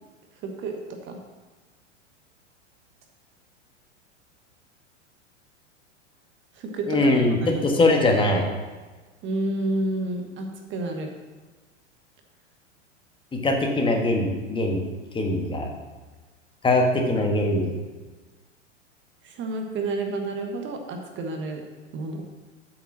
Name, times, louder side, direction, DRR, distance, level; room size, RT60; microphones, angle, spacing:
voice 1, 0.4-0.8 1.0-1.2 6.5-7.1 7.4-7.6 9.2-11.1 19.2-21.6 21.9-22.2, right 2 dB, 30° right, 3 dB, 1.3 m, -30 dB
voice 2, 6.9-7.4 7.6-8.5 13.3-14.8 15.1-15.7 16.6-17.7, left 2 dB, 15° left, 2 dB, 1.5 m, -21 dB
8.4 x 5.9 x 6.0 m, 1.3 s
figure-of-eight pair, 95°, 36 cm